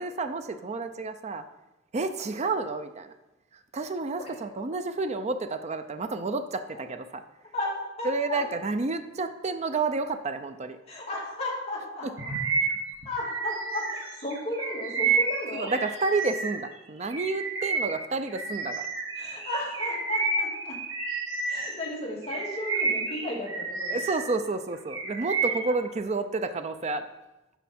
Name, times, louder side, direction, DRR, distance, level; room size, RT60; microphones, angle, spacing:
voice 1, 0.0-1.5 1.9-3.1 3.7-7.2 8.0-10.8 12.0-12.1 15.5-18.9 23.9-27.1, right 3 dB, 35° right, 9 dB, 0.5 m, -30 dB
voice 2, 8.0-8.4 10.9-12.3 13.0-15.7 19.2-20.8 21.5-24.0, left 1 dB, 30° left, -5 dB, 2.7 m, -34 dB
Bird vocalization bird call bird song, 12.2-16.7 17.1-21.8 22.2-24.3 24.7-25.7, right 4 dB, 80° right, 1.6 m, -30 dB
11.5 x 4.7 x 4.3 m, 0.99 s
head